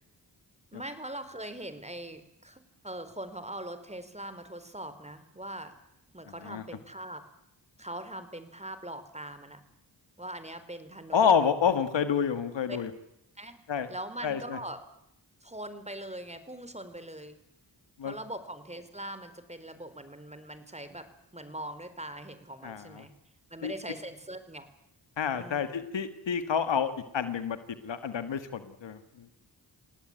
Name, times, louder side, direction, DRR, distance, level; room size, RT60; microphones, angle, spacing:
voice 1, 0.7-5.7 6.1-7.3 7.8-9.6 10.2-11.2 12.7-12.8 13.4-13.6 13.9-14.8 15.4-17.4 18.0-23.1 23.5-24.7 25.3-25.7, right 1 dB, 15° right, 11 dB, 4.4 m, -41 dB
voice 2, 11.1-12.9 13.7-13.9 14.2-14.6 18.0-18.2 22.6-23.0 23.6-23.7 25.2-27.6 27.8-29.3, left 7 dB, 90° left, 11 dB, 2.0 m, -28 dB
28.0 x 17.5 x 9.1 m, 0.80 s
cardioid pair, 45°, 43 cm